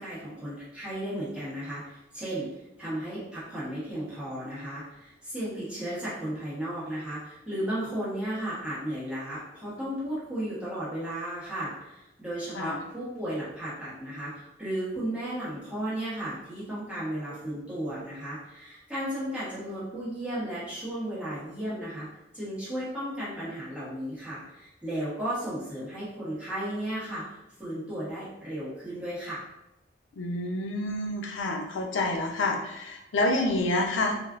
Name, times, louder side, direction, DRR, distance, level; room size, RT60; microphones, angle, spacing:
voice 1, 0.0-2.5 2.8-22.1 22.3-29.5, right 1 dB, 5° right, -11 dB, 1.1 m, -34 dB
voice 2, 30.2-34.2, left 2 dB, 90° left, 2 dB, 0.5 m, -28 dB
3.4 x 2.4 x 2.4 m, 0.91 s
head